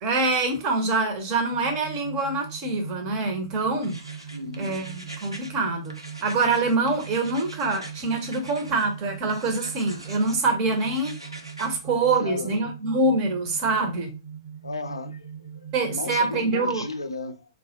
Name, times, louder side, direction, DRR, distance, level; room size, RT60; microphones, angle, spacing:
voice 1, 0.0-4.0 4.6-5.9 6.2-11.2 11.6-14.1 15.7-16.8, right 3 dB, 30° right, 0.6 m, -25 dB
sound 1, 1.5-16.5, right 7 dB, 70° right, 0.9 m, -41 dB
sound 2, 3.8-5.5 5.8-8.8 9.3-10.4 10.7-11.7, right 1 dB, 90° right, 0.5 m, -43 dB
voice 2, 4.3-4.8 7.2-7.4 11.2-11.4 11.9-12.8 14.6-17.5, left 3 dB, 75° left, 0.3 m, -35 dB
2.3 x 2.1 x 2.7 m
figure-of-eight pair, 115°, 3 cm